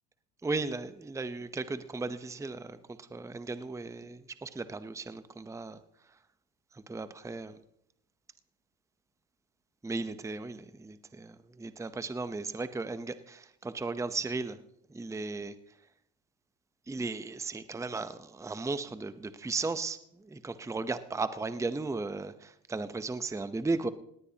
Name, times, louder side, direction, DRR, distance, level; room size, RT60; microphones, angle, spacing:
voice 1, 0.4-5.8 6.7-7.6 9.8-14.6 14.9-15.6 16.9-23.9, right 3 dB, 5° right, 0.7 m, -36 dB
18.0 x 18.0 x 2.9 m
supercardioid pair, 85°, 47 cm